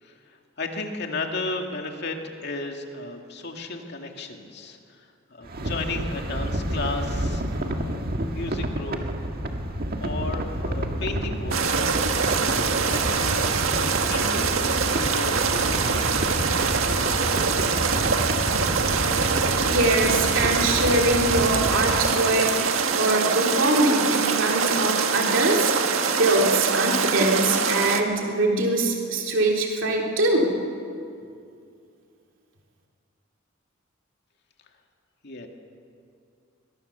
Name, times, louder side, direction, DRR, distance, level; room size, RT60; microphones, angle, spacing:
voice 1, 0.0-4.8 5.3-8.1 8.3-9.0 10.0-12.0 12.3-12.6 12.9-16.1 35.2-35.5, left 2 dB, 55° left, 3 dB, 2.4 m, -34 dB
sound 1, 5.4-22.1, right 1 dB, 50° right, 1.8 m, -29 dB
sound 2, 11.5-28.0, right 5 dB, 90° right, 1.7 m, -24 dB
voice 2, 19.6-30.5, right 2 dB, 65° right, 0 dB, 3.1 m, -23 dB
22.5 x 22.0 x 7.0 m, 2.4 s
head